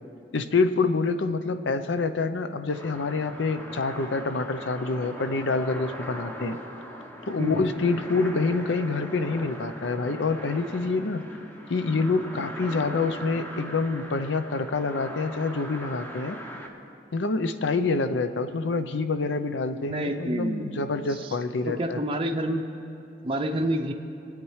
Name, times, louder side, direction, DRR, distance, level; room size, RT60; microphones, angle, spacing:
voice 1, 0.3-6.6 7.3-11.2 11.7-16.4 17.1-22.0, left 3 dB, 70° left, 10 dB, 0.6 m, -27 dB
sound 1, 2.7-16.7, equal, 10° left, 0.8 m, -40 dB
voice 2, 7.4-7.7 19.7-20.9 21.7-22.6 23.2-23.9, right 1 dB, 30° right, 2 dB, 0.6 m, -28 dB
22.5 x 8.8 x 3.2 m, 2.8 s
head